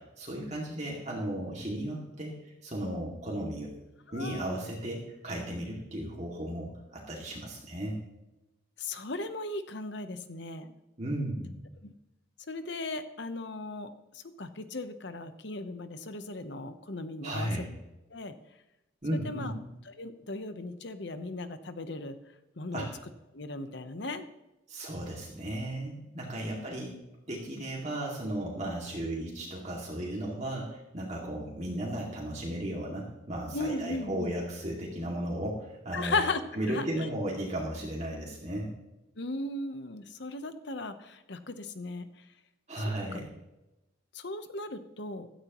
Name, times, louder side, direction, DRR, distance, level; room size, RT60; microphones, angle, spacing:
voice 1, 0.0-3.7 4.1-8.0 11.0-11.5 17.2-17.7 19.0-19.5 22.7-22.9 24.7-26.9 27.3-36.2 36.6-38.7 42.7-43.3, right 1 dB, 35° right, -3 dB, 2.3 m, -35 dB
voice 2, 4.1-4.6 8.8-10.7 11.8-11.9 12.5-17.5 18.1-18.3 19.1-19.5 19.9-22.2 22.6-22.9 23.3-24.3 26.4-26.6 33.5-34.3 35.9-36.4 36.7-37.1 39.2-42.3 42.8-43.3 44.1-45.3, left 2 dB, 55° left, 10 dB, 1.0 m, -37 dB
16.5 x 13.0 x 3.1 m, 0.96 s
head